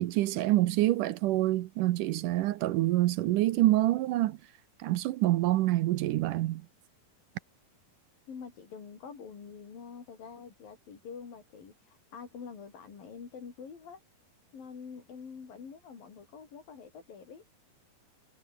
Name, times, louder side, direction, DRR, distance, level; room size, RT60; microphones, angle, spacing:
voice 1, 0.0-4.4 4.8-6.6, right 16 dB, 75° right, 2.0 m, -26 dB
voice 2, 8.3-14.0 14.5-17.4, left 6 dB, 65° left, 6.0 m, -46 dB
omnidirectional pair, 4.4 m